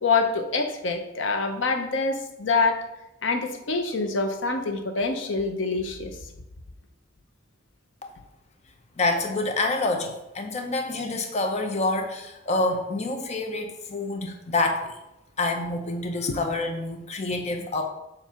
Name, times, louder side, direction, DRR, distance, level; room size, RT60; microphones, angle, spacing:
voice 1, 0.0-2.9 3.2-6.2, left 4 dB, 75° left, 6 dB, 0.7 m, -25 dB
voice 2, 9.0-14.9 15.4-17.8, left 2 dB, 35° left, 4 dB, 0.6 m, -27 dB
7.3 x 2.6 x 5.6 m, 0.92 s
head